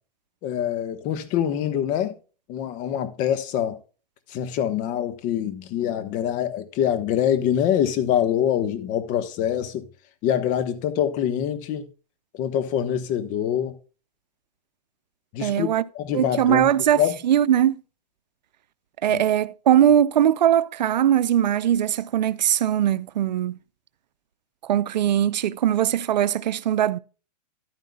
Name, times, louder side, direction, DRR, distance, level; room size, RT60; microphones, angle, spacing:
voice 1, 0.4-2.1 2.5-3.8 4.3-9.8 10.2-11.9 12.3-13.7 15.3-15.7 15.9-16.7 17.0-17.2 19.1-19.2, left 10 dB, 35° left, 1.2 m, -25 dB
voice 2, 15.4-15.8 16.1-17.8 19.0-23.6 24.6-27.0, right 10 dB, 85° right, 0.6 m, -20 dB
11.0 x 9.6 x 2.3 m
hypercardioid pair, 130°, 21 cm